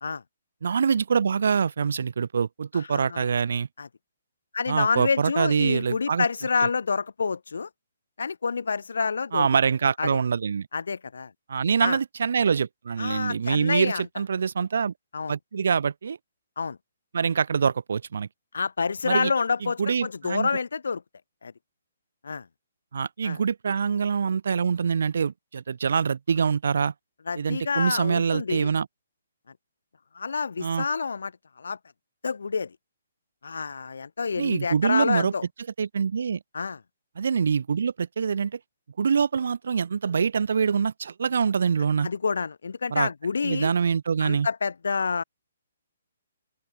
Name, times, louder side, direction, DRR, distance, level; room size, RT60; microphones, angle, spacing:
voice 1, 0.6-3.7 4.7-6.3 6.6-6.7 9.3-10.7 11.5-14.9 15.3-16.2 17.1-18.3 19.0-19.3 19.6-20.5 22.9-26.9 27.4-28.9 30.6-30.8 34.4-35.3 35.8-36.4 37.2-38.6 39.0-42.1 42.9-43.1 43.4-44.5, right 6 dB, 55° right, 4.6 m, -25 dB
voice 2, 2.7-3.3 3.8-3.9 4.5-7.7 8.2-9.5 10.0-10.2 10.7-11.3 11.8-12.0 13.0-14.0 15.1-15.3 16.6-16.8 18.5-21.0 21.4-21.5 22.2-22.5 23.2-23.4 27.3-28.7 30.1-31.3 31.6-31.8 32.2-32.8 33.4-35.4 36.5-36.8 42.0-43.7 44.2-45.2, left 5 dB, 85° left, 2.0 m, -28 dB
open air
hypercardioid pair, 180°, 0 cm